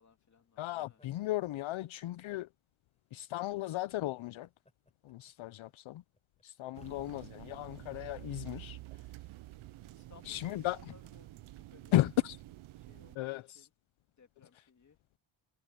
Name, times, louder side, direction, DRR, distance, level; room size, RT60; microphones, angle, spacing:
voice 1, 0.0-1.0 9.9-12.0 12.8-13.7 14.2-15.0, left 5 dB, 35° left, 2.7 m, -62 dB
voice 2, 0.6-2.5 3.1-4.5 5.0-6.0 6.4-8.8 10.3-10.8 11.9-12.4 13.2-13.7, left 15 dB, 70° left, 0.6 m, -35 dB
sound 1, 0.8-2.5 3.1-3.3 3.8-7.4 7.8-8.9 9.2-9.4 10.0-10.4 10.9-11.6, left 2 dB, 15° left, 6.2 m, -68 dB
sound 2, 6.7-13.2, right 17 dB, 75° right, 0.6 m, -49 dB
wide cardioid pair, 130°, 50 cm